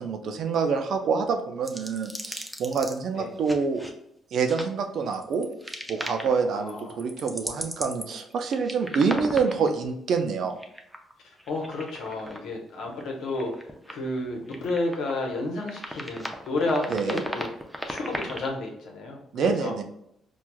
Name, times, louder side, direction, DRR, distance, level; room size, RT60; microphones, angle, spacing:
voice 1, 0.0-3.8 4.3-5.5 5.9-10.6 16.9-17.2 19.3-19.8, right 5 dB, 70° right, 6 dB, 0.5 m, -26 dB
sound 1, 1.6-3.0 3.4-3.9 4.5-4.6 5.1-6.4 6.7-9.8 10.5-11.1 11.4-12.4 12.8-13.1 13.4-14.2 14.5-15.2 15.6-18.5, equal, 5° right, 0.5 m, -37 dB
voice 2, 6.5-7.0 11.5-13.5 13.9-17.5 17.9-19.7, left 2 dB, 80° left, 0 dB, 0.9 m, -31 dB
4.5 x 2.3 x 2.2 m, 0.75 s
cardioid pair, 90°, 0 cm